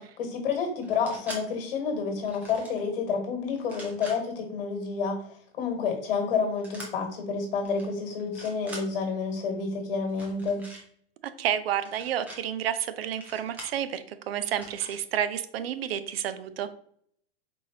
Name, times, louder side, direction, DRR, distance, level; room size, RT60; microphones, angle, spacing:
voice 1, 0.2-10.7, left 5 dB, 60° left, 4 dB, 1.4 m, -29 dB
sound 1, 0.8-1.4 2.2-2.8 3.6-4.2 6.6-6.9 7.6-7.9 8.2-8.8 10.1-10.8 11.8-12.4 13.2-13.8 14.5-15.0, right 1 dB, 5° right, 0.4 m, -43 dB
voice 2, 11.4-16.7, right 10 dB, 70° right, 12 dB, 0.5 m, -30 dB
4.4 x 3.2 x 2.7 m, 0.64 s
hypercardioid pair, 150°, 31 cm